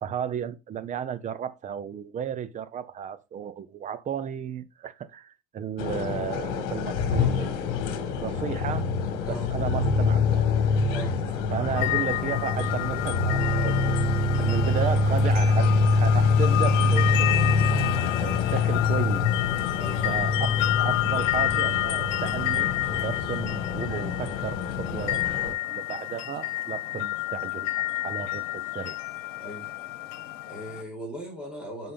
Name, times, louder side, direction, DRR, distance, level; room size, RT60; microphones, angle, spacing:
voice 1, 0.0-7.6 8.2-8.9 9.3-10.5 11.5-13.8 14.2-17.5 18.2-19.3 20.0-22.7 23.0-29.0, right 8 dB, 20° right, 0.6 m, -34 dB
sound 1, 5.8-25.5, left 4 dB, 60° left, 1.9 m, -25 dB
voice 2, 10.9-11.5 14.3-14.5 19.7-20.0 26.9-27.0 29.4-29.7 30.4-31.9, right 1 dB, 5° right, 3.1 m, -39 dB
sound 2, 11.8-30.8, left 17 dB, 80° left, 1.2 m, -30 dB
7.6 x 5.5 x 3.4 m
supercardioid pair, 145°, 36 cm